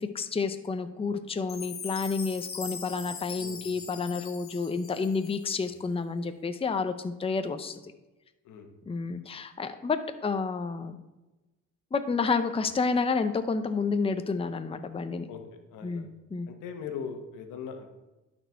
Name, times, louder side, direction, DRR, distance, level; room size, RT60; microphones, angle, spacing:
voice 1, 0.1-7.9 8.9-11.0 11.9-15.3 15.8-16.5, left 4 dB, 20° left, 9 dB, 0.6 m, -30 dB
Chime, 1.5-5.7, left 6 dB, 45° left, 1.4 m, -41 dB
voice 2, 15.3-16.1 16.5-17.9, left 6 dB, 90° left, 5 dB, 1.2 m, -40 dB
12.0 x 4.4 x 4.5 m, 1.1 s
cardioid pair, 90°, 30 cm